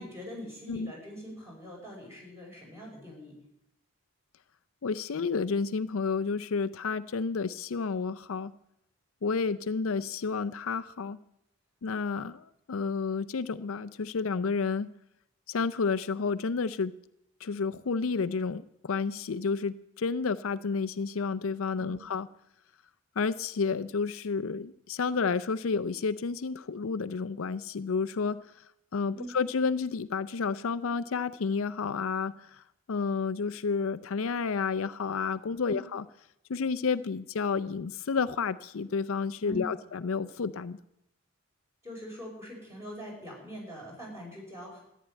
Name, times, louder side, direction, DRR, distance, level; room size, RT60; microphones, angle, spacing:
voice 1, 0.0-3.4 21.8-22.0 29.1-29.3 35.7-35.8 39.4-39.9 41.8-44.8, equal, 10° right, -3 dB, 5.8 m, -43 dB
voice 2, 4.8-8.5 9.2-11.2 11.8-14.9 15.5-16.9 17.4-22.3 23.2-28.4 28.9-32.6 32.9-36.0 36.5-40.8, left 5 dB, 70° left, 12 dB, 0.5 m, -30 dB
14.5 x 10.0 x 8.9 m, 0.81 s
head